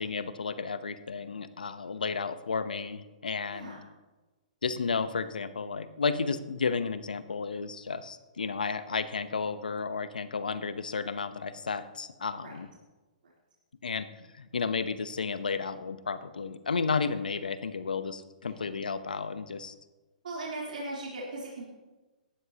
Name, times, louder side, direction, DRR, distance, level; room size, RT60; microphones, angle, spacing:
voice 1, 0.0-3.8 4.6-12.7 13.8-19.7, left 5 dB, 85° left, 12 dB, 0.8 m, -32 dB
voice 2, 20.2-21.6, right 2 dB, 70° right, -5 dB, 3.5 m, -38 dB
17.5 x 12.5 x 2.9 m, 1.2 s
hypercardioid pair, 130°, 4 cm